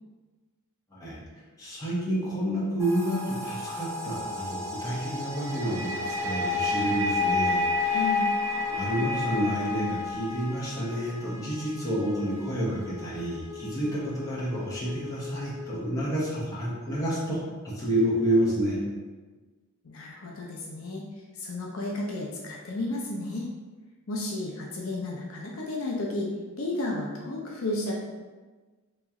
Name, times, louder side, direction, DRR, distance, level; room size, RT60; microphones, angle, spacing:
voice 1, 1.6-8.2 8.7-17.4 17.6-18.8, right 1 dB, 15° left, -7 dB, 0.9 m, -29 dB
sound 1, 2.8-15.8, left 2 dB, 10° right, 0.5 m, -40 dB
sound 2, 5.5-10.5, left 3 dB, 75° right, 0.4 m, -28 dB
voice 2, 7.9-8.3 19.8-21.0 21.3-23.5 24.1-26.3 26.6-27.9, left 2 dB, 65° left, -2 dB, 0.5 m, -32 dB
3.0 x 2.9 x 3.6 m, 1.3 s
head